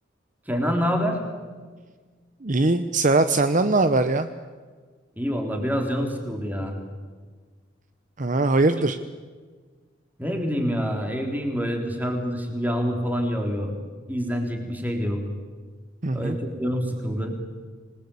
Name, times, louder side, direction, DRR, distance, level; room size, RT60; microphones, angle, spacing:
voice 1, 0.5-1.2 5.2-6.8 10.2-13.7 14.1-15.2 16.1-17.3, equal, 10° right, 3 dB, 3.6 m, -26 dB
voice 2, 2.4-4.3 8.2-9.0 16.0-16.4, right 2 dB, 40° right, 10 dB, 0.8 m, -21 dB
26.5 x 20.0 x 8.5 m, 1.5 s
head